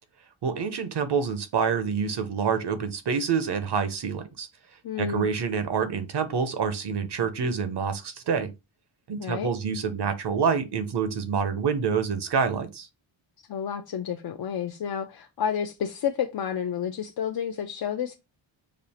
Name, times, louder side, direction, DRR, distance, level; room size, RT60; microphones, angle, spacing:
voice 1, 0.4-4.5 5.0-8.5 9.1-12.9, right 6 dB, 55° right, 0.8 m, -27 dB
voice 2, 4.8-5.3 9.2-9.5 13.5-18.2, left 8 dB, 50° left, 0.5 m, -30 dB
5.2 x 2.4 x 4.1 m
wide cardioid pair, 175°, 47 cm